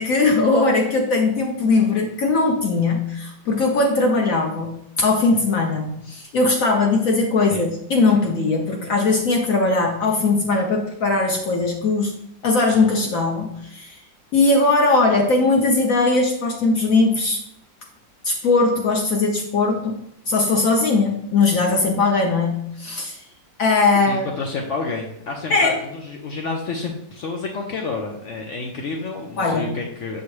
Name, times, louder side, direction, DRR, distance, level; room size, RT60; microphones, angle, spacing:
voice 1, 0.0-12.1 12.4-13.9 14.3-17.4 18.2-20.0 20.3-23.2 23.6-24.3 25.5-25.8 29.4-29.7, left 3 dB, 60° left, 2 dB, 0.9 m, -19 dB
voice 2, 23.9-30.2, left 3 dB, 85° left, 2 dB, 0.6 m, -29 dB
6.9 x 4.5 x 3.1 m, 0.75 s
omnidirectional pair, 2.0 m